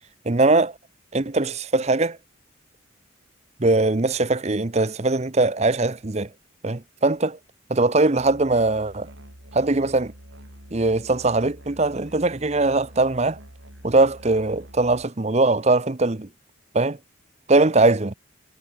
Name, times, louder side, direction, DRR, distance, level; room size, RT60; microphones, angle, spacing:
voice 1, 0.2-0.7 1.1-2.2 3.6-6.3 6.6-7.4 7.7-9.1 9.5-10.1 10.7-13.4 13.8-16.3 16.7-17.0 17.5-18.1, right 2 dB, 35° right, 0.8 m, -21 dB
Musical instrument, 8.2-15.0, right 1 dB, 75° right, 5.9 m, -46 dB
head